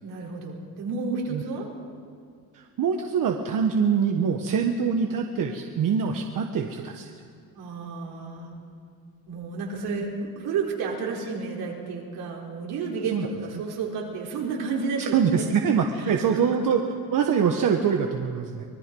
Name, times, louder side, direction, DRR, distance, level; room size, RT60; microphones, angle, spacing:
voice 1, 0.0-1.7 7.5-8.5 9.3-15.4 16.0-16.1, right 4 dB, 80° right, -2 dB, 4.7 m, -31 dB
voice 2, 2.5-7.1 13.1-13.3 15.0-18.6, right 6 dB, 55° right, 3 dB, 1.4 m, -24 dB
25.0 x 19.5 x 5.5 m, 2.2 s
cardioid pair, 110°, 37 cm